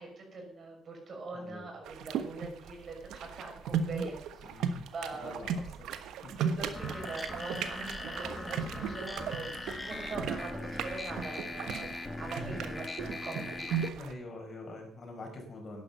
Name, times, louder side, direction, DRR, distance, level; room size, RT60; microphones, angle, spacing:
voice 1, 0.0-4.2 4.6-5.5 6.3-13.7, right 3 dB, 50° right, 1 dB, 6.0 m, -42 dB
voice 2, 1.3-1.6 4.4-4.8 5.2-5.6 6.2-6.3 6.6-6.7 13.9-15.8, left 2 dB, 45° left, 2 dB, 4.9 m, -45 dB
sound 1, 1.8-14.1, right 7 dB, 85° right, 1.3 m, -37 dB
sound 2, 6.7-13.9, left 2 dB, 20° left, 1.4 m, -40 dB
11.0 x 11.0 x 6.7 m, 0.65 s
cardioid pair, 90°, 0 cm